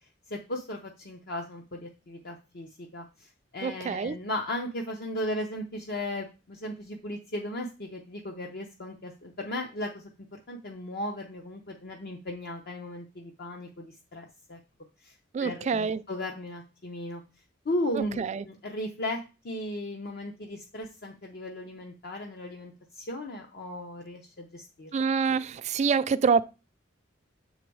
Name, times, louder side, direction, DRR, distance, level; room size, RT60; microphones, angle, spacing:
voice 1, 0.3-3.3 3.5-14.6 15.0-15.1 15.4-17.2 17.6-24.9, left 1 dB, 55° left, 0.7 m, -36 dB
voice 2, 3.6-4.2 15.3-16.0 17.9-18.4 24.9-26.5, right 5 dB, 35° right, 0.3 m, -26 dB
7.0 x 4.0 x 4.6 m
head